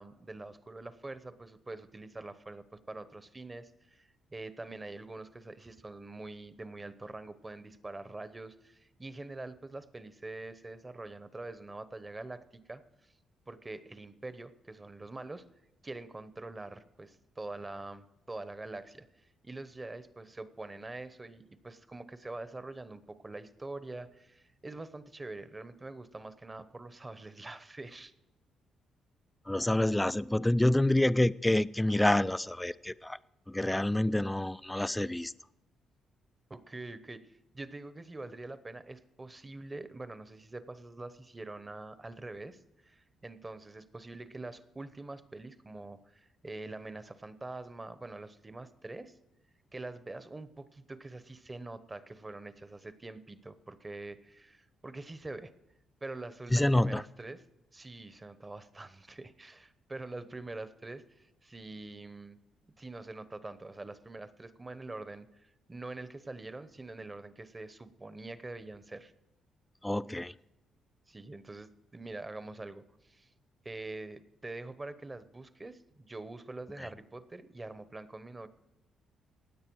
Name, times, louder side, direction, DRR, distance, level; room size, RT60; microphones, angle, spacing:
voice 1, 0.0-13.1 13.5-15.4 15.8-28.1 36.5-49.2 49.7-55.5 56.0-57.4 57.7-62.4 62.6-69.1 71.1-73.3 73.6-78.5, right 2 dB, 20° right, 13 dB, 0.9 m, -45 dB
voice 2, 29.5-33.2 33.5-35.3 56.5-57.0 69.8-70.3, left 1 dB, 10° left, 16 dB, 0.4 m, -27 dB
16.5 x 9.6 x 4.7 m, 0.96 s
cardioid pair, 90°, 0 cm